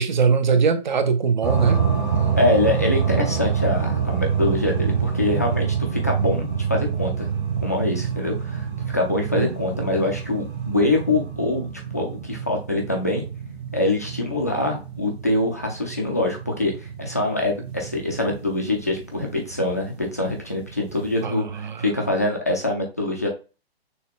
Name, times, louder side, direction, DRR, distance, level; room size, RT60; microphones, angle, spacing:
voice 1, 0.0-1.8 9.3-9.5 9.9-10.0 21.2-21.9, right 5 dB, 45° right, 0.7 m, -21 dB
sound 1, 1.4-21.2, right 7 dB, 25° right, 1.1 m, -27 dB
voice 2, 2.4-7.3 7.6-8.7 8.9-11.7 11.9-13.2 13.7-23.3, left 2 dB, 15° left, 0.4 m, -24 dB
6.4 x 2.2 x 3.5 m
hypercardioid pair, 175°, 32 cm